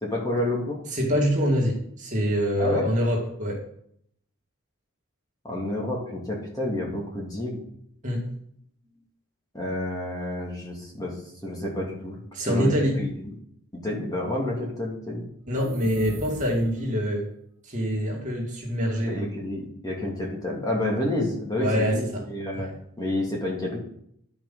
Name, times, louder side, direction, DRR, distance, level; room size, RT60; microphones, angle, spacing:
voice 1, 0.0-0.8 2.6-2.9 5.4-7.6 9.5-11.1 11.4-12.2 12.4-13.3 13.7-15.2 19.0-22.7 23.0-23.8, left 1 dB, 15° left, -3 dB, 2.5 m, -29 dB
voice 2, 0.9-3.6 8.0-8.3 12.3-13.0 15.5-17.3 17.6-19.3 21.6-22.2, equal, 35° right, -2 dB, 2.6 m, -25 dB
sound 1, 15.4-17.0, right 1 dB, 70° right, 1.8 m, -39 dB
11.0 x 6.0 x 5.6 m, 0.69 s
head